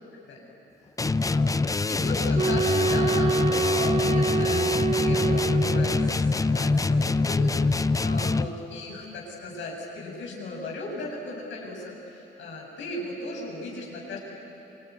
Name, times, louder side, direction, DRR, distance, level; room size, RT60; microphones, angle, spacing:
sound 1, 1.0-8.6, left 3 dB, 15° left, 0.6 m, -24 dB
voice 1, 1.3-1.6 1.9-14.2, left 2 dB, 75° left, -2 dB, 7.2 m, -36 dB
sound 2, 2.3-6.2, right 4 dB, 35° right, 0.7 m, -26 dB
27.0 x 22.0 x 9.6 m, 3.0 s
cardioid pair, 90°, 20 cm